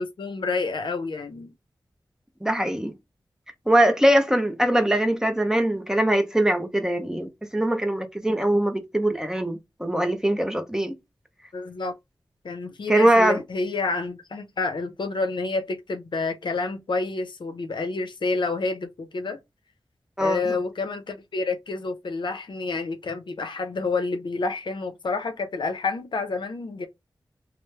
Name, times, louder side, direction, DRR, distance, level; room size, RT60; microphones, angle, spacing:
voice 1, 0.0-1.5 11.5-11.9 12.4-19.4 20.2-26.9, left 3 dB, 70° left, 0.6 m, -29 dB
voice 2, 2.4-2.9 3.7-10.9 12.9-13.4 20.2-20.5, right 1 dB, 5° right, 0.6 m, -22 dB
3.1 x 2.0 x 3.1 m
cardioid pair, 55°, 8 cm